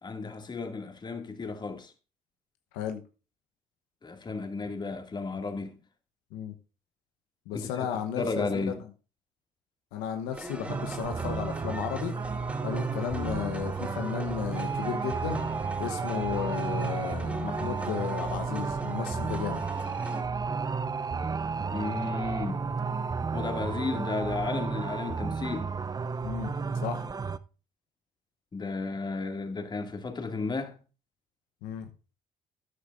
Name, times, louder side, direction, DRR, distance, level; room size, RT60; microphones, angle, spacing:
voice 1, 0.0-1.9 4.0-5.8 7.5-7.9 8.2-8.8 21.7-22.7 23.3-25.7 28.5-30.8, left 3 dB, 30° left, 2.2 m, -33 dB
voice 2, 7.5-8.7 9.9-12.1 12.6-15.4 15.8-19.6 26.2-27.1 31.6-31.9, left 9 dB, 85° left, 1.0 m, -34 dB
sound 1, 10.3-20.2, right 1 dB, 10° right, 2.9 m, -41 dB
sound 2, 10.7-27.4, right 5 dB, 25° right, 0.6 m, -32 dB
13.0 x 9.9 x 2.6 m
supercardioid pair, 70°, 14 cm